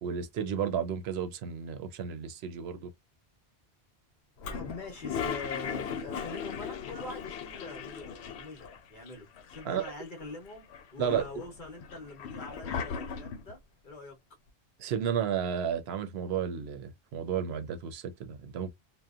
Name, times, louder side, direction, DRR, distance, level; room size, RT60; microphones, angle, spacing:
voice 1, 0.0-2.9 9.6-9.8 11.0-11.4 14.8-18.7, right 8 dB, 75° right, 0.8 m, -32 dB
Toilet flush, 4.4-8.8 9.1-9.2 9.4-10.2 10.7-13.5, left 7 dB, 80° left, 0.8 m, -38 dB
voice 2, 4.5-13.6 13.8-14.2, left 2 dB, 55° left, 0.9 m, -44 dB
2.8 x 2.1 x 2.3 m
omnidirectional pair, 1.1 m